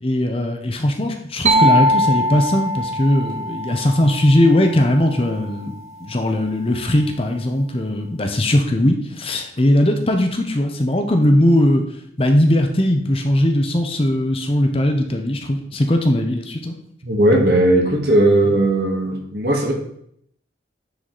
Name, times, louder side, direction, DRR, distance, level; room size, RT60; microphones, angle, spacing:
voice 1, 0.0-11.8 12.2-16.7, left 1 dB, 30° left, 5 dB, 0.8 m, -19 dB
sound 1, 1.5-5.1, equal, 35° right, 0.6 m, -21 dB
voice 2, 17.0-19.7, right 1 dB, 55° right, 0 dB, 1.7 m, -17 dB
9.7 x 4.8 x 4.0 m, 0.70 s
head